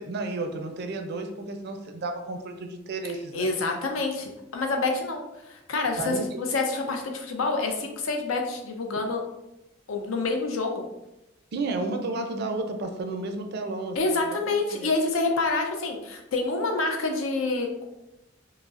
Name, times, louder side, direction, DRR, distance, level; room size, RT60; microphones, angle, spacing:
voice 1, 0.0-3.5 6.0-6.4 11.5-14.9, right 2 dB, 55° right, 5 dB, 0.4 m, -32 dB
voice 2, 3.3-9.2 9.9-10.8 14.0-17.9, left 3 dB, 85° left, 3 dB, 0.6 m, -27 dB
5.0 x 2.0 x 2.4 m, 0.93 s
head